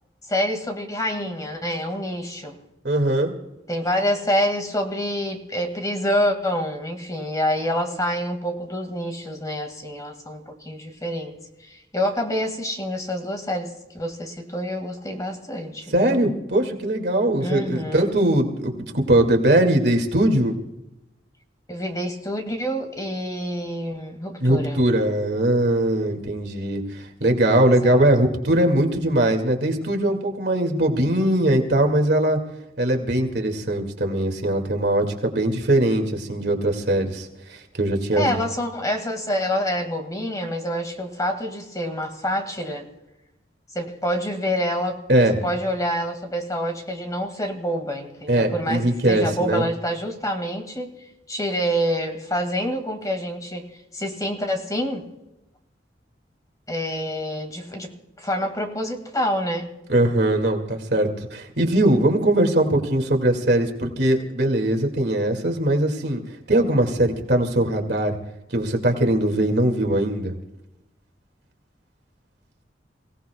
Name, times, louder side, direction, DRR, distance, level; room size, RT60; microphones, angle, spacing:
voice 1, 0.3-2.5 3.7-11.4 11.6-16.2 17.4-18.2 21.7-24.8 27.8-28.0 38.2-42.9 43.7-45.0 45.4-50.9 51.3-53.7 53.9-55.1 56.7-57.9 58.2-59.7, equal, 20° left, 4 dB, 2.0 m, -27 dB
voice 2, 2.8-3.3 15.9-20.6 24.4-32.4 32.8-38.4 45.1-45.3 48.3-49.7 59.9-66.2 66.5-68.2 68.5-70.3, right 1 dB, 65° right, 3 dB, 2.3 m, -21 dB
29.0 x 17.5 x 2.3 m, 0.94 s
head